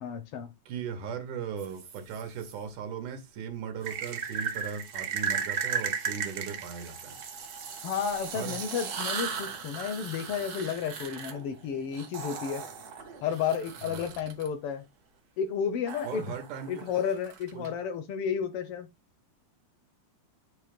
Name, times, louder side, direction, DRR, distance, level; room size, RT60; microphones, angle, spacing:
voice 1, 0.0-0.5 7.8-12.6 13.2-14.8 15.4-16.2 16.7-18.9, left 7 dB, 75° left, 1.3 m, -32 dB
voice 2, 0.7-7.2 8.3-8.6 13.8-14.2 16.0-16.8 17.5-17.7, right 7 dB, 90° right, 2.9 m, -38 dB
sound 1, 1.6-2.5 3.8-14.5 15.9-17.7, right 6 dB, 60° right, 1.0 m, -36 dB
8.4 x 3.2 x 5.1 m
omnidirectional pair, 3.4 m